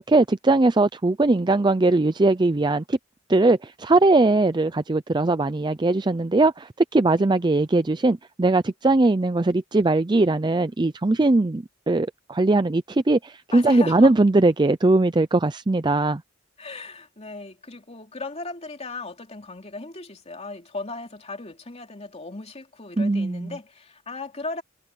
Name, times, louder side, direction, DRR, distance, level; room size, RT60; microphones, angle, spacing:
voice 1, 0.0-3.0 3.3-16.2 23.0-23.5, right 2 dB, 20° right, 0.5 m, -20 dB
voice 2, 13.5-14.1 16.6-24.6, left 3 dB, 35° left, 3.0 m, -36 dB
head